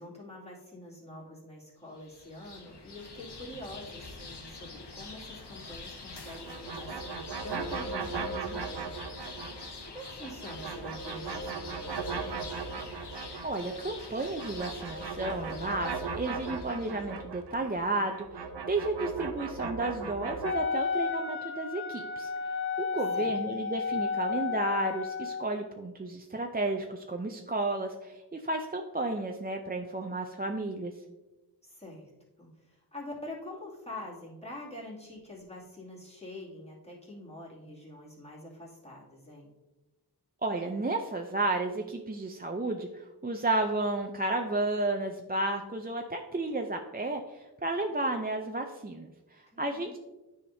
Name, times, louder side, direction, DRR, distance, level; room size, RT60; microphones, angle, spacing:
voice 1, 0.0-8.9 9.8-12.5 23.1-23.3 31.6-32.1 32.4-39.5 49.5-49.9, left 1 dB, 15° left, -6 dB, 2.4 m, -45 dB
sound 1, 1.9-17.1, left 3 dB, 80° left, 1.0 m, -46 dB
sound 2, 6.1-9.7 10.0-13.7 14.0-20.5, right 4 dB, 85° right, 0.7 m, -38 dB
voice 2, 13.4-30.9 40.4-50.0, right 2 dB, 25° right, 3 dB, 0.5 m, -32 dB
Wind instrument woodwind instrument, 20.4-25.5, left 5 dB, 35° left, 0.4 m, -32 dB
9.6 x 5.0 x 2.7 m, 1.1 s
wide cardioid pair, 45°, 40 cm